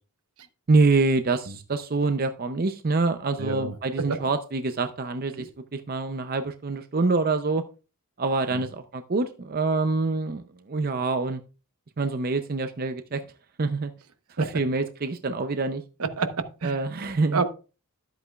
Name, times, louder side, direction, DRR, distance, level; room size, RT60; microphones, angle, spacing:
voice 1, 0.7-7.6 8.2-11.4 12.0-13.2 13.6-13.9 14.4-15.8 16.6-17.4, right 3 dB, 40° right, 0.5 m, -26 dB
voice 2, 3.4-3.7 4.1-4.2 5.4-5.5 8.5-8.6 14.4-14.5 16.0-16.8 17.3-17.4, right 4 dB, 75° right, 0.9 m, -28 dB
12.5 x 8.1 x 2.3 m
head